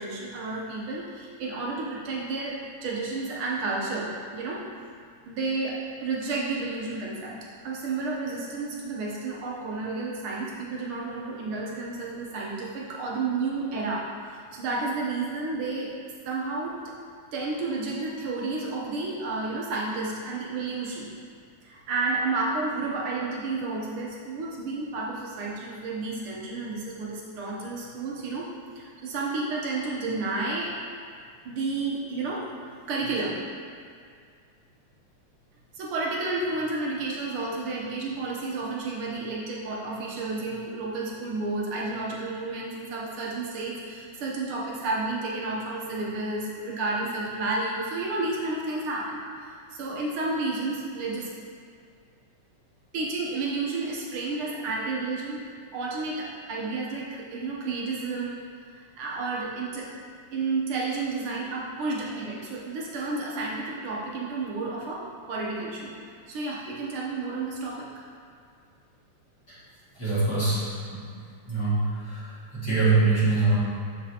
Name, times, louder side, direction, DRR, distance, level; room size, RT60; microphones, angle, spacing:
voice 1, 0.0-4.6 5.3-7.4 7.6-16.0 16.2-16.8 17.3-21.1 21.6-30.7 31.4-33.4 35.7-49.2 49.7-51.3 52.9-55.4 55.7-58.5 58.7-59.9 60.3-65.9 66.3-68.1, right 3 dB, 70° right, -3 dB, 1.3 m, -31 dB
voice 2, 70.0-70.7 70.9-71.0 71.5-72.2 72.5-73.6, right 3 dB, 40° left, -11 dB, 2.2 m, -23 dB
12.5 x 4.2 x 2.8 m, 2.2 s
omnidirectional pair, 3.4 m